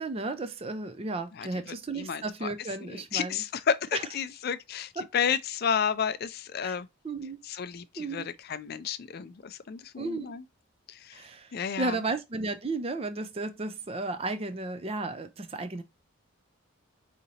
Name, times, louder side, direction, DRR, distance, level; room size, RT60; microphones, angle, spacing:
voice 1, 0.0-3.4 3.9-4.0 5.0-5.1 6.6-6.7 7.0-7.4 8.0-8.3 10.0-10.4 11.1-11.5 11.8-15.8, right 3 dB, 25° right, 0.4 m, -33 dB
voice 2, 1.3-2.5 2.8-6.9 7.4-10.4 10.9-11.2 11.5-12.0, left 7 dB, 45° left, 0.4 m, -32 dB
5.0 x 2.8 x 2.8 m
head